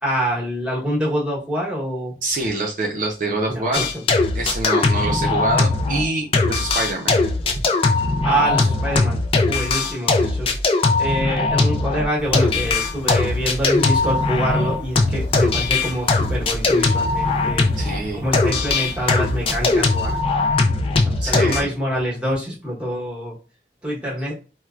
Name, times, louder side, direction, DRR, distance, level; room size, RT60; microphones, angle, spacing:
voice 1, 0.0-2.1 3.5-3.9 4.9-5.2 8.2-10.5 11.0-17.7 18.1-20.2 21.0-23.4 23.8-24.3, equal, 5° right, -4 dB, 1.0 m, -25 dB
voice 2, 2.2-3.9 4.3-7.2 17.8-18.2 21.2-21.7, right 2 dB, 45° right, -1 dB, 0.5 m, -25 dB
sound 1, 3.7-6.1 6.3-18.0 18.3-21.6, left 3 dB, 30° left, 0.4 m, -20 dB
sound 2, 12.2-20.2, equal, 75° left, 0.8 m, -36 dB
4.4 x 2.2 x 2.4 m, 0.35 s
head